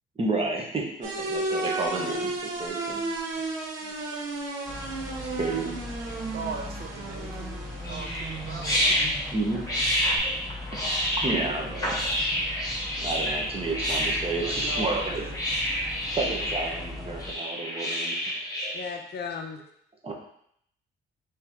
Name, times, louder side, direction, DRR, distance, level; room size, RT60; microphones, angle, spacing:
voice 1, 0.2-3.0 3.8-4.0 5.3-5.7 9.3-9.7 11.2-12.1 13.0-15.2 16.1-18.2 20.0-20.1, right 3 dB, 30° right, 0 dB, 1.1 m, -31 dB
sound 1, 1.0-10.2, right 2 dB, 85° right, 0.9 m, -34 dB
sound 2, 4.7-17.3, left 2 dB, ahead, 0.8 m, -40 dB
voice 2, 6.3-9.1 14.4-15.4, right 5 dB, 50° right, 3 dB, 0.6 m, -39 dB
sound 3, 7.8-18.8, equal, 15° left, 1.3 m, -28 dB
voice 3, 18.7-19.6, left 6 dB, 60° left, 4 dB, 0.7 m, -36 dB
4.4 x 3.1 x 3.6 m, 0.68 s
cardioid pair, 90°, 20 cm